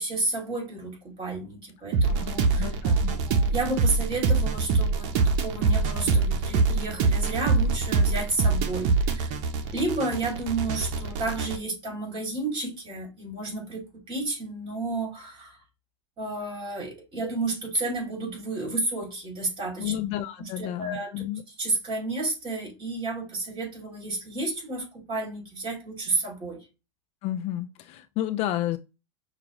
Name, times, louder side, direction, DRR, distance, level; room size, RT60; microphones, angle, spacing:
voice 1, 0.0-9.3 9.7-15.6 16.2-19.9 20.4-21.1 21.6-26.7, right 2 dB, 30° right, 2.8 m, -31 dB
sound 1, 1.9-11.6, right 4 dB, 55° right, 0.8 m, -24 dB
voice 2, 2.1-3.2 17.2-17.3 19.8-21.4 27.2-28.8, left 13 dB, 40° left, 0.4 m, -31 dB
6.1 x 2.4 x 3.0 m
hypercardioid pair, 110°, 16 cm